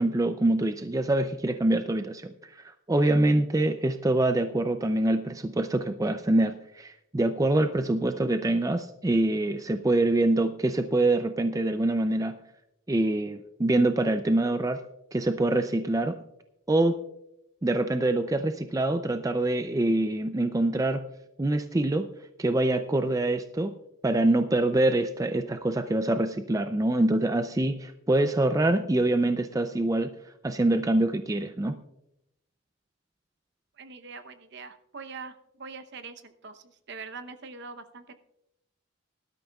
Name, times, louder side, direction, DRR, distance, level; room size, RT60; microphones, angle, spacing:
voice 1, 0.0-12.4 12.9-14.8 15.1-16.2 16.7-17.0 17.6-21.1 21.4-22.1 22.4-23.7 24.0-30.1 30.4-31.8, right 2 dB, 15° right, 8 dB, 0.4 m, -25 dB
voice 2, 33.8-38.1, right 4 dB, 55° right, 9 dB, 0.8 m, -43 dB
19.0 x 12.5 x 2.3 m, 0.84 s
head